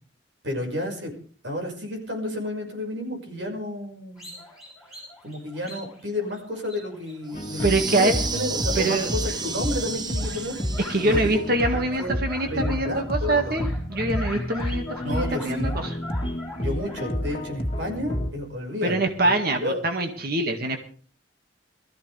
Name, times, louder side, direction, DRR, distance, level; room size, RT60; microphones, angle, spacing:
voice 1, 0.4-1.1 1.4-4.3 5.2-10.6 11.0-12.1 12.4-13.6 15.0-15.7 16.6-19.3 19.6-19.8, left 1 dB, 70° right, 2 dB, 5.6 m, -31 dB
sound 1, 4.2-9.4 9.8-11.2 11.6-17.4, left 2 dB, 5° right, 6.3 m, -42 dB
sound 2, 7.3-18.3, equal, 30° left, 1.9 m, -30 dB
sound 3, 7.3-11.4, right 4 dB, 20° right, 1.0 m, -32 dB
voice 2, 7.6-8.1 8.8-9.1 10.9-16.0 18.8-20.8, right 2 dB, 50° right, 5 dB, 2.0 m, -24 dB
22.0 x 14.5 x 3.4 m, 0.41 s
head